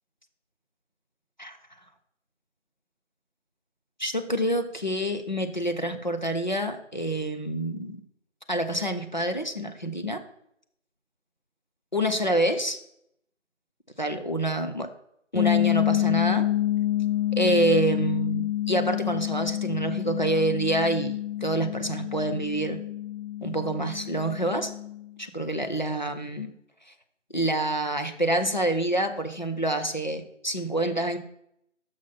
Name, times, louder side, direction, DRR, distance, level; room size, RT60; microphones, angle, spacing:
voice 1, 4.0-8.0 8.5-10.2 11.9-12.8 14.0-14.9 15.3-16.5 17.4-22.8 23.4-24.7 25.2-26.5 27.3-31.2, right 1 dB, 40° left, 6 dB, 0.6 m, -27 dB
sound 1, 15.4-25.0, left 13 dB, 85° left, 2.4 m, -28 dB
6.3 x 6.0 x 5.6 m, 0.73 s
figure-of-eight pair, 170°, 38 cm